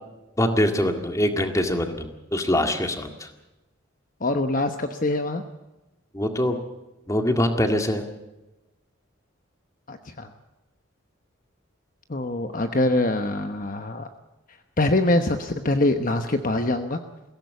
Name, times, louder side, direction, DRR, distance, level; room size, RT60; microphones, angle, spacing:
voice 1, 0.4-3.3 6.1-6.6 7.1-8.1, left 1 dB, 15° left, 5 dB, 2.0 m, -23 dB
voice 2, 4.2-5.4 9.9-10.3 12.1-14.1 14.8-17.0, left 2 dB, 40° left, 7 dB, 1.0 m, -24 dB
22.0 x 16.5 x 8.3 m, 1.0 s
head